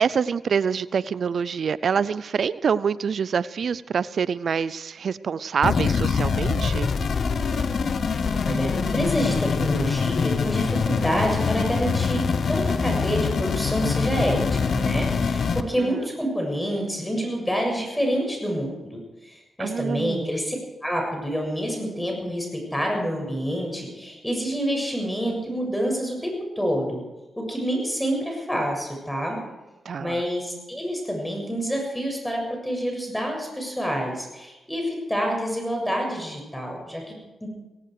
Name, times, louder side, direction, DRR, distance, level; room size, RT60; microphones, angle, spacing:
voice 1, 0.0-6.9 15.8-16.0 19.6-20.3 29.8-30.2, right 6 dB, 65° right, 18 dB, 0.5 m, -26 dB
sound 1, 5.6-15.6, left 5 dB, 65° left, 1.1 m, -24 dB
voice 2, 8.4-20.6 20.8-27.0 27.4-29.4 30.0-37.6, equal, 10° left, 2 dB, 7.0 m, -27 dB
17.5 x 17.0 x 4.9 m, 1.1 s
supercardioid pair, 45°, 0 cm